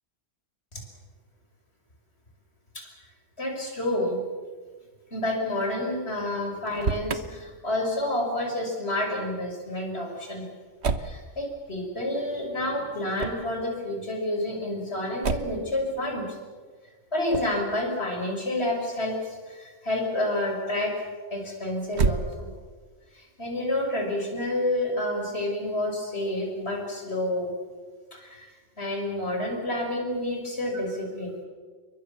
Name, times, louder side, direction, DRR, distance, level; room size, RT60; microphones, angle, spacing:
voice 1, 3.4-4.2 5.1-10.5 11.0-16.4 17.1-21.0 21.3-22.5 23.1-27.5 28.1-28.5 28.8-31.4, left 1 dB, 60° left, 1 dB, 6.3 m, -29 dB
Motor vehicle (road), 6.5-7.2 10.8-11.2 13.1-13.5 15.2-15.7 17.3-17.6 21.9-22.7, right 4 dB, 65° right, 1.5 m, -28 dB
29.0 x 23.0 x 7.0 m, 1.5 s
omnidirectional pair, 1.2 m